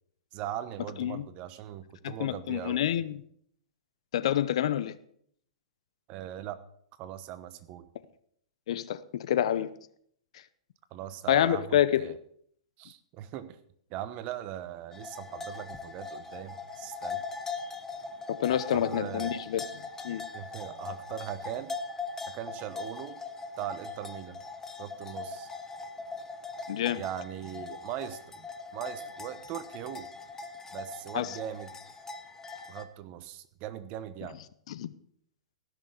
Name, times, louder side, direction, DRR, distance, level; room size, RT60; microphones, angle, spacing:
voice 1, 0.3-2.8 6.1-6.6 7.0-7.9 10.9-12.2 12.8-13.6 13.9-17.2 18.5-19.3 20.3-21.7 22.3-23.2 23.6-24.4 24.8-25.5 27.0-30.1 30.7-31.7 32.7-34.4, right 11 dB, 35° right, 1.0 m, -40 dB
voice 2, 2.0-3.2 4.1-5.0 8.7-9.7 11.3-12.2 18.3-20.2 26.7-27.0 31.1-31.3 34.7-34.9, left 11 dB, 65° left, 0.8 m, -28 dB
sound 1, 14.9-32.8, left 4 dB, 10° left, 1.1 m, -41 dB
15.0 x 6.5 x 6.6 m
hypercardioid pair, 130°, 4 cm